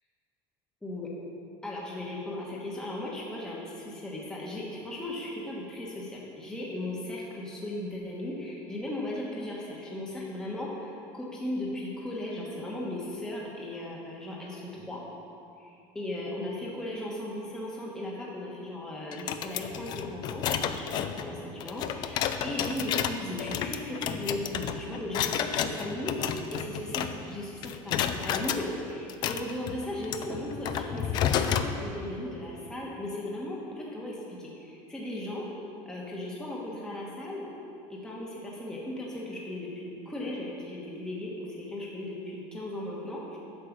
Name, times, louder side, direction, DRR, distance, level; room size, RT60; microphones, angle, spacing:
voice 1, 1.6-15.0 15.6-35.5 35.8-37.5 37.9-43.4, left 1 dB, 5° left, -4 dB, 1.2 m, -37 dB
sound 1, 19.1-27.4 27.6-28.6 29.1-31.7, left 9 dB, 40° left, 0.4 m, -31 dB
8.9 x 6.6 x 7.4 m, 2.6 s
cardioid pair, 175°, 11 cm